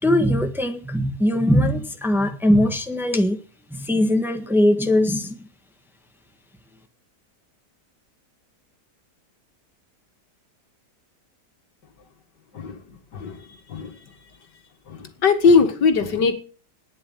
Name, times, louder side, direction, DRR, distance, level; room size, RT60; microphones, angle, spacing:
voice 1, 0.0-3.4 3.7-5.3, left 1 dB, ahead, 6 dB, 1.4 m, -20 dB
voice 2, 13.1-13.4 13.7-13.9 14.9-16.3, left 5 dB, 80° left, 7 dB, 2.4 m, -19 dB
11.5 x 9.9 x 7.4 m, 0.38 s
omnidirectional pair, 1.8 m